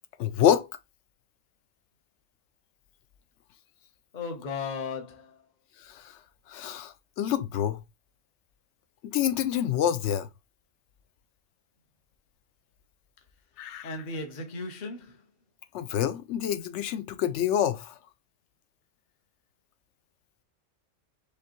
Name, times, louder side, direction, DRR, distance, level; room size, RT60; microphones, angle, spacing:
voice 1, 0.2-0.7 5.8-6.2 6.5-7.8 9.0-10.3 13.6-13.9 15.7-18.0, left 10 dB, 70° left, 0.8 m, -27 dB
voice 2, 4.1-5.4 13.8-15.3, left 4 dB, 40° left, 0.9 m, -36 dB
4.9 x 3.2 x 3.0 m
omnidirectional pair, 1.3 m